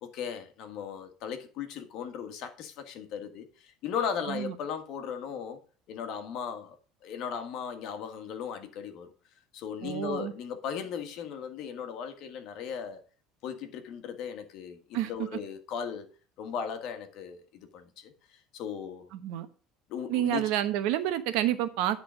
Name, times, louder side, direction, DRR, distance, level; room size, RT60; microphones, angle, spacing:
voice 1, 0.0-5.6 5.9-6.7 7.0-9.1 9.5-13.0 13.4-16.1 16.4-18.1 18.5-19.1 19.9-20.5, left 7 dB, 55° left, 1.5 m, -37 dB
voice 2, 9.8-10.3 14.9-15.1 19.1-19.5 20.1-22.0, right 12 dB, 70° right, 1.0 m, -29 dB
9.9 x 3.9 x 6.2 m
cardioid pair, 155°, 0 cm